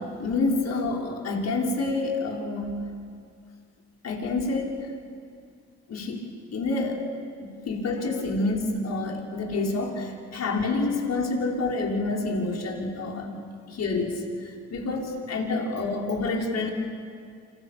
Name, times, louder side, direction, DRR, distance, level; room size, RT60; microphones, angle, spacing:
voice 1, 0.0-3.0 4.0-4.9 5.9-6.2 6.5-7.0 7.5-13.3 13.7-16.7, left 3 dB, 55° left, -1 dB, 5.9 m, -28 dB
29.0 x 27.0 x 7.1 m, 2.2 s
hypercardioid pair, 55°, 32 cm